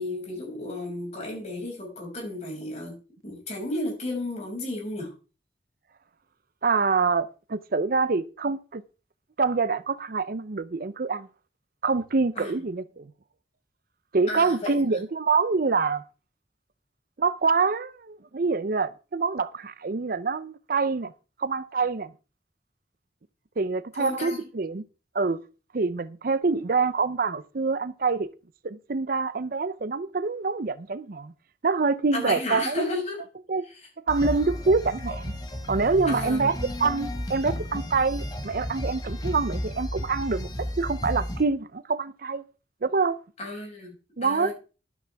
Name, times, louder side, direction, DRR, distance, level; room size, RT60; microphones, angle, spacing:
voice 1, 0.0-2.9 3.2-5.1 12.4-12.5 14.3-14.8 24.0-24.4 32.1-33.2 36.1-36.5 43.4-43.9 44.2-44.5, left 2 dB, 40° left, 6.2 m, -32 dB
voice 2, 6.6-8.8 9.4-11.3 11.8-13.1 14.1-16.0 17.2-21.1 21.4-22.1 23.6-24.8 25.1-25.4 25.7-28.3 28.6-31.3 31.6-32.9 33.5-33.6 34.1-35.3 35.7-42.4 42.8-43.2 44.2-44.5, right 4 dB, 55° right, 0.6 m, -26 dB
sound 1, 34.1-41.4, equal, 20° left, 1.5 m, -33 dB
13.0 x 12.0 x 3.5 m
head